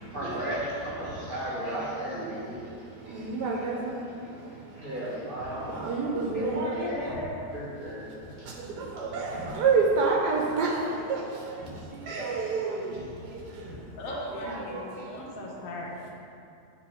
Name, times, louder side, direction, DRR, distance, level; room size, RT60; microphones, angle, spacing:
voice 1, 0.1-2.6 4.8-5.7 7.5-8.0 9.3-9.5, right 1 dB, 35° right, -8 dB, 1.3 m, -34 dB
voice 2, 2.8-6.7 8.3-14.2 14.4-15.4, right 4 dB, 80° right, -2 dB, 1.2 m, -30 dB
voice 3, 6.4-7.4 14.0-16.1, left 1 dB, 60° left, -2 dB, 1.1 m, -36 dB
8.9 x 3.6 x 3.4 m, 2.6 s
omnidirectional pair, 1.8 m